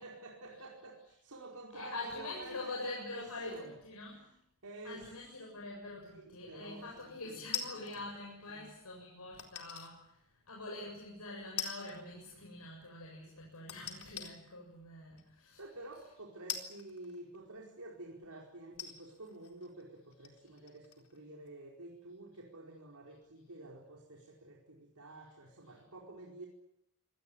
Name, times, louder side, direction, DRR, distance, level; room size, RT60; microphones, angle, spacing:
voice 1, 0.0-3.8 4.6-5.1 6.0-7.9 8.5-8.7 15.6-26.5, right 2 dB, 85° right, -1 dB, 4.8 m, -50 dB
voice 2, 1.7-4.4 4.8-15.6, left 2 dB, 90° left, -1 dB, 7.5 m, -45 dB
sound 1, 7.5-8.1 9.4-9.9 10.5-10.6 11.6-12.0 12.3-12.4 13.7-14.3 15.2-15.3 16.5-17.6 18.2-18.3 18.7-21.2 21.5-21.6, left 8 dB, 75° left, 4.1 m, -42 dB
26.0 x 19.0 x 9.0 m, 0.77 s
head